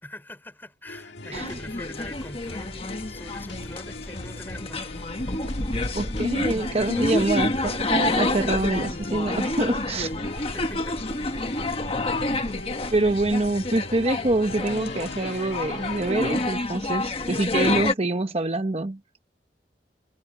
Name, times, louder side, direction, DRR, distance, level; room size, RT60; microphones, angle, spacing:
voice 1, 0.0-4.8 10.5-11.0 11.7-12.0, left 1 dB, 10° left, 3.6 m, -43 dB
sound 1, 0.9-16.4, left 2 dB, 90° left, 2.0 m, -41 dB
sound 2, 1.3-17.9, left 2 dB, 35° left, 1.4 m, -28 dB
sound 3, 5.2-13.5, right 1 dB, 75° right, 1.1 m, -41 dB
voice 2, 5.9-10.1 12.9-19.0, right 2 dB, 35° right, 0.8 m, -25 dB
head